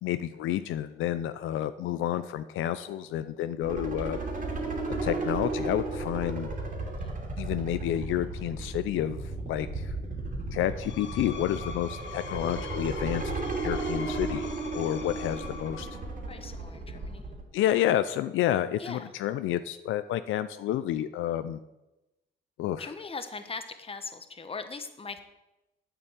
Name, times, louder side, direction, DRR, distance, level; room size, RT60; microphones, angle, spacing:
voice 1, 0.0-4.2 5.0-6.5 7.4-9.2 9.5-9.9 10.5-13.2 13.6-15.9 17.5-21.6 22.6-22.8, left 12 dB, 85° left, 12 dB, 0.5 m, -30 dB
sound 1, 3.6-17.4, right 2 dB, 40° right, 3.0 m, -34 dB
Screech, 10.7-16.1, left 6 dB, 65° left, 1.2 m, -43 dB
voice 2, 16.3-17.3 18.8-19.1 22.8-25.2, left 4 dB, 30° left, 9 dB, 1.3 m, -40 dB
8.9 x 7.1 x 8.2 m, 0.99 s
cardioid pair, 90°, 20 cm